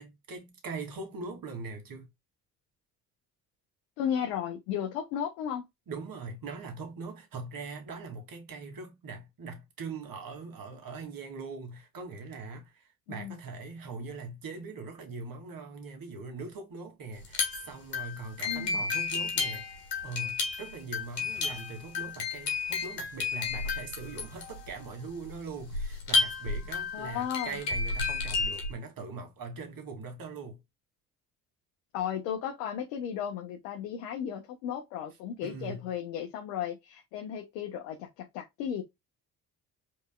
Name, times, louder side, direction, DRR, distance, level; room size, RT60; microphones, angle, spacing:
voice 1, 0.0-2.1 5.9-30.6 35.4-35.9, right 4 dB, 45° right, 2.4 m, -41 dB
voice 2, 4.0-5.6 13.1-13.3 18.5-18.8 26.9-27.6 31.9-38.8, left 9 dB, 70° left, 1.1 m, -35 dB
sound 1, 17.2-28.7, left 4 dB, 90° left, 1.4 m, -32 dB
5.5 x 4.4 x 2.2 m
hypercardioid pair, 50°, 47 cm